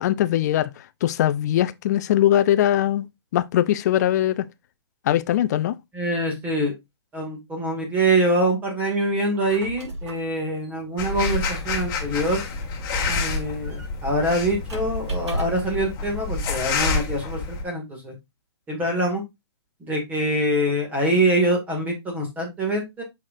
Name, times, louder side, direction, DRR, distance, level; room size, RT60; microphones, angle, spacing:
voice 1, 0.0-3.1 3.3-4.5 5.1-5.8, left 12 dB, 40° left, 0.6 m, -21 dB
voice 2, 5.9-6.7 7.1-12.4 13.1-18.1 18.7-19.2 19.8-23.0, right 1 dB, 10° right, 2.3 m, -24 dB
Squeak, 9.2-15.8, right 1 dB, 80° right, 3.0 m, -37 dB
sound 1, 11.0-17.6, left 4 dB, 25° left, 1.8 m, -28 dB
6.3 x 5.8 x 2.6 m
hypercardioid pair, 150°, 14 cm